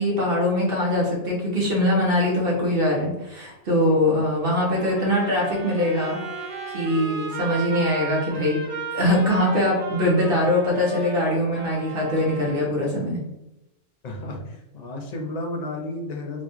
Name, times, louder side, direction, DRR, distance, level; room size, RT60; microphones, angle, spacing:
voice 1, 0.0-6.2 6.7-8.6 8.9-13.2, left 1 dB, 55° right, -3 dB, 1.0 m, -22 dB
Bowed string instrument, 3.5-7.1, right 1 dB, 25° left, 0.9 m, -43 dB
Trumpet, 4.5-12.6, right 4 dB, 85° right, 1.3 m, -35 dB
voice 2, 14.0-16.4, left 1 dB, 50° left, 1 dB, 0.5 m, -32 dB
4.1 x 2.2 x 2.9 m, 0.91 s
omnidirectional pair, 1.2 m